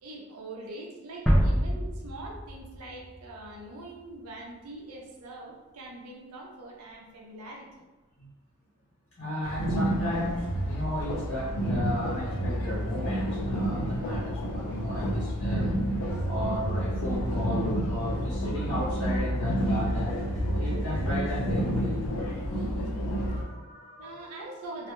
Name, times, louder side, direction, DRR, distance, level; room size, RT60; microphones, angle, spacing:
voice 1, 0.0-7.7 24.0-24.9, right 2 dB, 80° right, -1 dB, 0.5 m, -43 dB
sound 1, 1.3-4.1, equal, 5° left, 0.3 m, -27 dB
voice 2, 9.2-15.7 16.2-21.9 23.1-24.3, equal, 55° left, -9 dB, 0.8 m, -34 dB
sound 2, 9.4-23.4, equal, 75° left, 0.4 m, -29 dB
2.1 x 2.0 x 2.9 m, 1.2 s
head